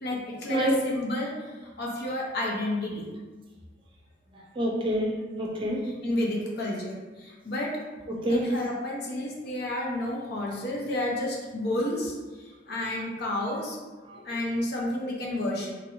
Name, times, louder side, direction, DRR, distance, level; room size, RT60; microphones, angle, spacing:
voice 1, 0.0-3.1 6.0-7.8 8.3-13.8 14.2-15.7, left 1 dB, 65° left, -2 dB, 0.7 m, -31 dB
voice 2, 4.6-5.8 8.1-8.5 14.1-14.2, right 1 dB, 30° right, -2 dB, 0.5 m, -27 dB
2.9 x 2.6 x 3.0 m, 1.2 s
head